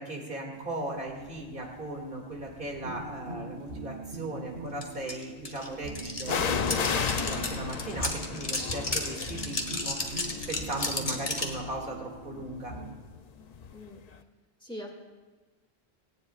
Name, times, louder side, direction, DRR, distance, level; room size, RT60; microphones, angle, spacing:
voice 1, 0.0-12.7, right 2 dB, 50° right, 0 dB, 2.4 m, -38 dB
sound 1, 1.3-1.7 2.4-3.3 6.2-13.9 14.2-14.3, left 6 dB, 50° left, 0.5 m, -35 dB
sound 2, 2.8-12.9, right 2 dB, 90° right, 4.5 m, -42 dB
sound 3, 4.8-4.9 5.1-11.6, left 2 dB, 35° left, 1.4 m, -33 dB
voice 2, 13.7-14.0 14.6-14.9, equal, 5° left, 0 dB, 1.9 m, -41 dB
18.0 x 17.5 x 2.4 m, 1.3 s
omnidirectional pair, 1.1 m